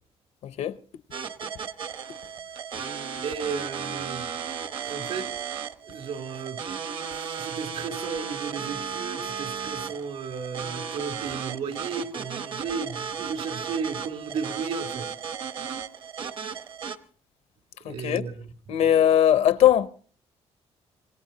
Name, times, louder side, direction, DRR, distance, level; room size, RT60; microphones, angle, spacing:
voice 1, 0.4-0.7 17.9-18.2 18.7-19.9, left 11 dB, 70° left, 0.8 m, -20 dB
sound 1, 1.1-17.0, right 6 dB, 50° right, 1.0 m, -35 dB
voice 2, 3.2-4.2 4.9-5.3 5.8-6.6 7.4-15.1 17.8-18.5 18.7-19.0, right 5 dB, 70° right, 3.0 m, -34 dB
26.5 x 19.0 x 2.8 m
cardioid pair, 165°, 11 cm